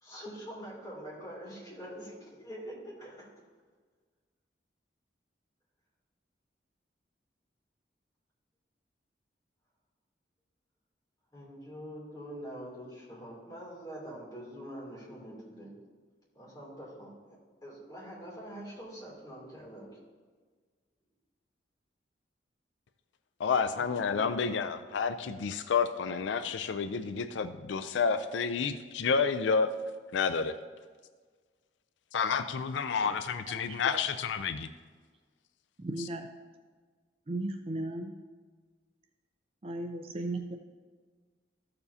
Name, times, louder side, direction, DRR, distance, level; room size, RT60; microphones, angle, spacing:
voice 1, 0.0-3.3 11.3-15.7 16.3-17.1 17.6-19.9 23.7-24.2, equal, 20° left, -6 dB, 2.8 m, -44 dB
voice 2, 23.4-29.7 30.1-30.5 32.1-34.7, left 5 dB, 80° left, 11 dB, 0.4 m, -30 dB
voice 3, 33.5-34.0 35.8-36.3 37.3-38.1 39.6-40.6, right 2 dB, 30° right, 5 dB, 0.4 m, -36 dB
14.0 x 6.9 x 2.8 m, 1.5 s
head